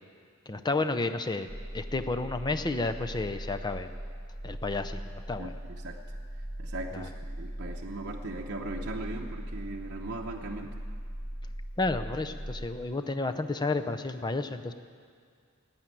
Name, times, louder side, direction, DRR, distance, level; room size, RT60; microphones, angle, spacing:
voice 1, 0.5-1.5 1.7-3.9 4.4-5.5 6.9-7.1 11.8-14.7, left 3 dB, 20° left, 9 dB, 0.6 m, -31 dB
sound 1, 1.5-12.7, equal, 50° left, 3.0 m, -40 dB
voice 2, 5.4-6.2 6.6-10.7, right 2 dB, 50° right, -1 dB, 0.9 m, -39 dB
15.0 x 8.8 x 9.8 m, 2.1 s
head